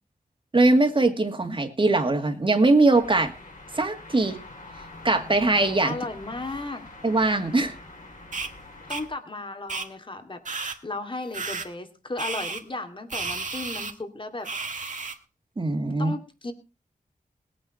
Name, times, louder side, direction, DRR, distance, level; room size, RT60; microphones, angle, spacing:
voice 1, 0.5-3.3 3.7-4.4 5.0-6.0 7.0-7.7 15.6-16.1, right 2 dB, 35° right, 5 dB, 2.2 m, -21 dB
sound 1, 2.9-9.1, left 2 dB, 60° left, 5.1 m, -45 dB
voice 2, 5.8-6.8 8.9-10.4 10.8-14.5 14.8-15.0 16.0-16.5, left 2 dB, 35° left, 6 dB, 2.6 m, -35 dB
sound 2, 8.3-8.5 8.9-9.0 9.7-9.9 10.4-10.8 11.3-11.7 12.2-12.6 13.1-13.9 14.4-15.1, right 4 dB, 60° right, 2.0 m, -32 dB
20.5 x 9.3 x 4.3 m, 0.31 s
wide cardioid pair, 110°, 15 cm